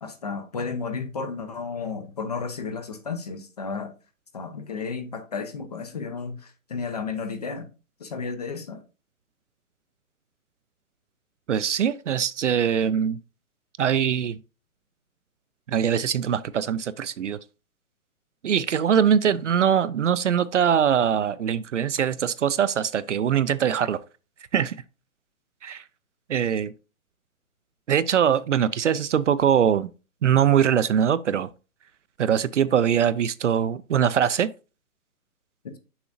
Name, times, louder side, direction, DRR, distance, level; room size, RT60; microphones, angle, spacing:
voice 1, 0.0-3.9 4.3-7.7 8.0-8.8 35.6-35.8, left 5 dB, 30° left, 0.6 m, -33 dB
voice 2, 11.5-13.2 13.8-14.4 15.7-17.4 18.4-24.0 24.5-24.8 25.6-25.8 26.3-26.7 27.9-29.9 30.2-31.5 32.2-34.5, right 8 dB, 55° right, 0.5 m, -22 dB
7.0 x 6.1 x 2.6 m
hypercardioid pair, 160°, 44 cm